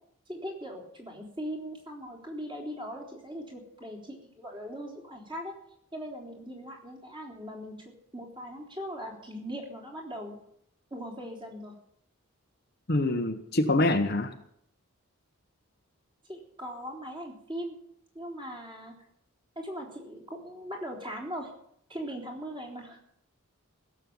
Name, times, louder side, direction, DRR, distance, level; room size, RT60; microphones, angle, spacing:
voice 1, 0.3-5.5 5.9-10.4 10.9-11.7 16.3-17.8 18.1-18.9 19.6-21.5 21.9-23.0, equal, 20° right, -1 dB, 3.7 m, -40 dB
voice 2, 12.9-14.3, left 2 dB, 45° left, 6 dB, 1.1 m, -25 dB
16.5 x 7.6 x 8.8 m, 0.71 s
head